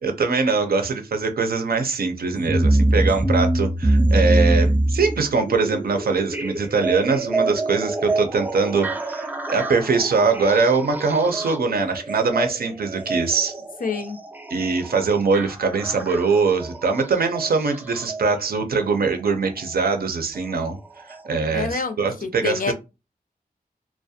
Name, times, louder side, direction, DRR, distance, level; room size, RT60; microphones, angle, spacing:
voice 1, 0.0-13.6 14.5-20.8 21.2-22.7, right 4 dB, 70° right, 0.5 m, -22 dB
sound 1, 2.3-18.2 19.5-19.6 20.3-20.4 21.1-21.2, right 1 dB, 10° right, 0.3 m, -25 dB
voice 2, 13.8-14.2 21.5-22.7, left 4 dB, 60° left, 0.4 m, -27 dB
2.3 x 2.1 x 2.7 m
wide cardioid pair, 80°, 16 cm